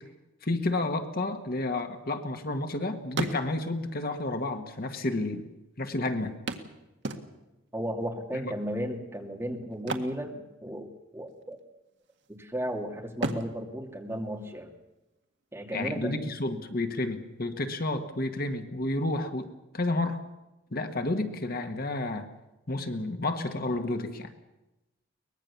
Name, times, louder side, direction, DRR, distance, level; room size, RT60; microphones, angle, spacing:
voice 1, 0.4-5.4 5.8-6.3 8.4-8.5 15.7-19.5 19.7-20.2 20.7-22.3 22.7-24.3, left 2 dB, 50° left, 7 dB, 1.6 m, -30 dB
sound 1, 1.4-2.7 3.0-3.9 4.8-4.9 5.1-5.2 6.5-7.7 9.7-11.0 11.3-11.5 12.0-12.6 13.1-14.9 16.9-17.0 17.4-17.5, right 2 dB, 65° right, 1.9 m, -37 dB
voice 2, 7.7-11.6 12.3-14.7 15.5-16.2, equal, 10° right, 2 dB, 2.7 m, -34 dB
23.0 x 20.0 x 7.1 m, 0.98 s
head